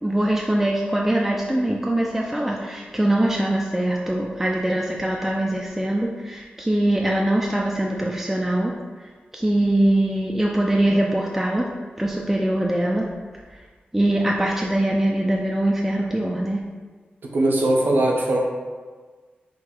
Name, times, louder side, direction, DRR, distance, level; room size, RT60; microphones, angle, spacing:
voice 1, 0.0-8.7 9.3-11.7 12.0-13.1 13.9-16.6, right 1 dB, 10° right, -2 dB, 0.3 m, -22 dB
voice 2, 17.2-18.4, right 1 dB, 65° right, 0 dB, 0.7 m, -20 dB
3.8 x 2.6 x 4.2 m, 1.5 s
wide cardioid pair, 115°, 4 cm